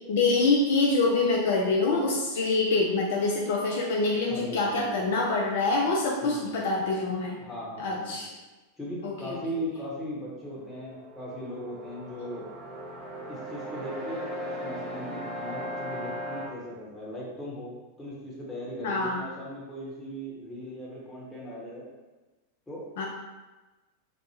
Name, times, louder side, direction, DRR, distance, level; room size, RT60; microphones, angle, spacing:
voice 1, 0.1-7.4 7.8-8.3 9.0-9.4 18.8-19.2 23.0-23.1, left 3 dB, 55° left, -2 dB, 0.4 m, -25 dB
voice 2, 4.3-5.0 6.2-6.6 7.4-8.1 8.8-12.4 13.3-14.3 14.6-17.7 18.0-21.8 22.7-22.8, equal, 10° left, -7 dB, 0.9 m, -38 dB
sound 1, 10.5-16.5, equal, 25° right, 0.6 m, -37 dB
2.6 x 2.1 x 3.1 m, 1.2 s
figure-of-eight pair, 90°, 0 cm